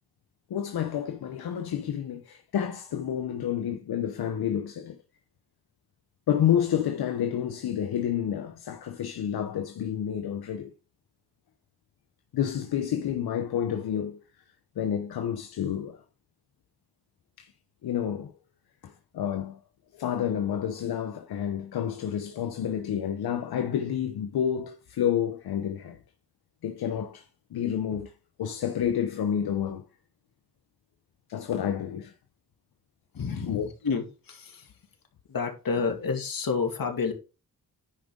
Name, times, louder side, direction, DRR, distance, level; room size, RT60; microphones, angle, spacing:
voice 1, 0.5-5.0 6.3-10.7 12.3-14.2 14.8-16.0 17.4-17.5 17.8-18.3 18.8-19.6 19.9-26.0 26.6-27.2 27.5-28.1 28.4-29.8 31.3-32.1 33.5-33.7, left 9 dB, 90° left, 0.9 m, -29 dB
voice 2, 33.1-34.7 35.3-37.1, left 5 dB, 65° left, 2.4 m, -30 dB
10.0 x 5.2 x 3.8 m
cardioid pair, 70°, 36 cm